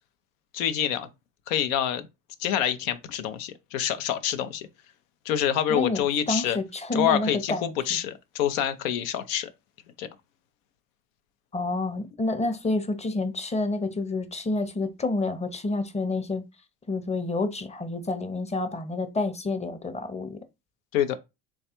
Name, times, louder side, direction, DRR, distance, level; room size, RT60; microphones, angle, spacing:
voice 1, 0.5-1.1 1.5-2.1 2.4-4.7 5.2-6.6 6.9-9.5 10.0-10.1 20.9-21.2, left 10 dB, 85° left, 0.6 m, -26 dB
voice 2, 5.7-8.0 11.5-16.4 16.9-20.4, left 2 dB, 15° left, 0.7 m, -29 dB
3.4 x 2.4 x 4.2 m
supercardioid pair, 90°, 39 cm